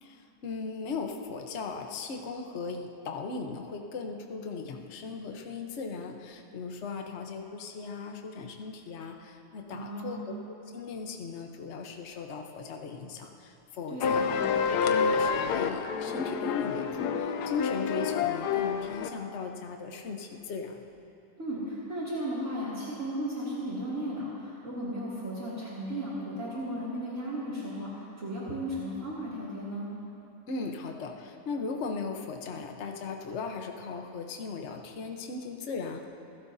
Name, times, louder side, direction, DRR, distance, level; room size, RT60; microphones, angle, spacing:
voice 1, 0.0-14.4 14.7-20.8 30.5-36.1, left 4 dB, 50° left, 3 dB, 1.1 m, -37 dB
voice 2, 9.7-10.2 13.9-14.3 21.4-29.9, equal, 45° right, -8 dB, 2.9 m, -35 dB
sound 1, 14.0-19.1, left 6 dB, 75° left, 1.3 m, -28 dB
27.0 x 16.0 x 2.7 m, 2.8 s
omnidirectional pair, 1.8 m